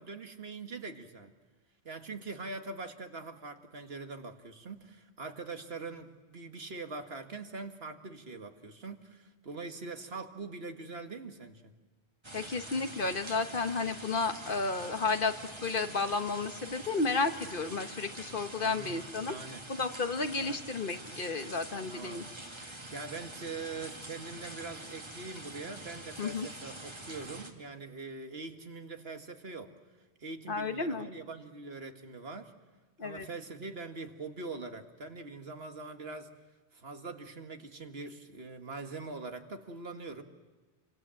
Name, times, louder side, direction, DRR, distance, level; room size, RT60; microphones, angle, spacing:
voice 1, 0.0-1.3 1.9-11.7 18.6-19.0 19.3-19.6 20.4-20.6 21.9-22.3 22.9-29.7 30.2-32.5 33.0-36.3 36.7-40.2, right 3 dB, 65° right, 6 dB, 1.9 m, -43 dB
sound 1, 12.2-27.5, right 1 dB, 25° right, 2.1 m, -46 dB
voice 2, 12.3-15.3 15.6-19.3 19.7-22.2 26.2-26.5 30.5-31.1 33.0-33.3, left 4 dB, 55° left, 8 dB, 1.4 m, -32 dB
28.5 x 25.0 x 7.7 m, 1.3 s
omnidirectional pair, 1.1 m